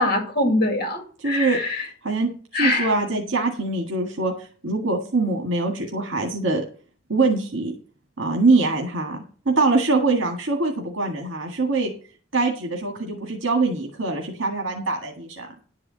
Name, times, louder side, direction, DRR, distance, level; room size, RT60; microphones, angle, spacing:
voice 1, 0.0-1.8 2.5-2.9, left 2 dB, 50° left, 4 dB, 2.4 m, -23 dB
voice 2, 1.2-1.6 2.0-4.3 4.6-6.6 7.1-7.7 8.2-9.2 9.5-11.9 12.3-15.5, right 3 dB, 75° right, 2 dB, 1.8 m, -23 dB
11.0 x 4.8 x 7.5 m, 0.41 s
head